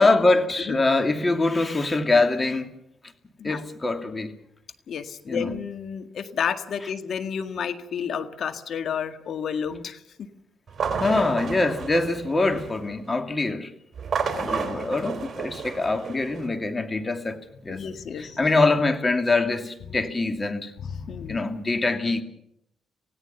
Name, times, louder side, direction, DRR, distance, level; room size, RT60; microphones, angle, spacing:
voice 1, 0.0-2.7 3.4-4.3 5.3-5.5 11.0-13.7 14.4-17.8 18.2-20.7 21.3-22.2, left 3 dB, 25° left, 2.6 m, -24 dB
voice 2, 4.9-10.0 14.4-14.9 17.7-18.4 20.8-21.4, left 7 dB, 65° left, 1.8 m, -31 dB
sound 1, 10.7-12.9 13.9-16.5, right 6 dB, 45° right, 3.6 m, -31 dB
27.0 x 17.0 x 7.0 m
supercardioid pair, 65°, 0 cm